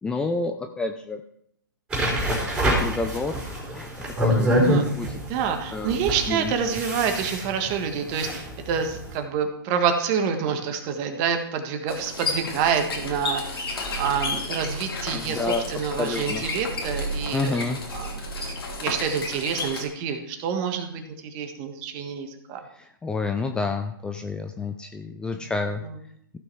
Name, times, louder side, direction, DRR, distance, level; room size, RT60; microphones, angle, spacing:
voice 1, 0.0-1.2 2.6-3.4 3.7-4.5 4.9-5.2 5.5-6.0 6.3-6.5 15.1-16.4 17.3-17.8 22.8-25.8, left 3 dB, 5° left, 6 dB, 0.5 m, -29 dB
sound 1, 1.9-9.1, equal, 10° right, 4.1 m, -26 dB
voice 2, 4.5-4.9 5.3-13.7 14.0-17.6 17.9-18.1 18.8-21.0 21.3-22.6, right 7 dB, 30° right, 6 dB, 1.5 m, -27 dB
sound 2, 11.9-19.8, left 2 dB, 85° left, 2.9 m, -32 dB
15.0 x 6.0 x 4.6 m, 0.71 s
hypercardioid pair, 140°, 12 cm